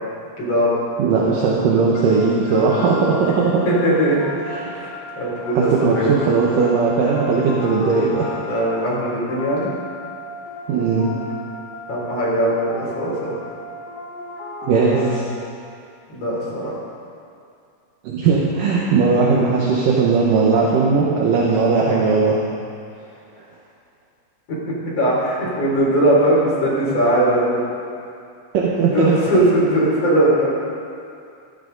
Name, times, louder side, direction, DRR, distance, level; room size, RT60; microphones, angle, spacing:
voice 1, 0.4-0.7 3.7-4.2 4.6-6.1 8.4-9.7 11.9-13.3 16.1-16.7 19.1-19.3 25.0-27.6 28.9-30.5, right 1 dB, 35° left, -6 dB, 4.2 m, -19 dB
voice 2, 1.0-3.6 4.4-4.7 5.5-8.3 10.7-11.1 14.6-15.2 18.0-22.4 28.5-29.2, right 4 dB, 70° right, -4 dB, 2.2 m, -18 dB
sound 1, 2.0-15.8, left 2 dB, 90° left, 4.2 m, -35 dB
16.0 x 14.0 x 4.0 m, 2.4 s
omnidirectional pair, 5.2 m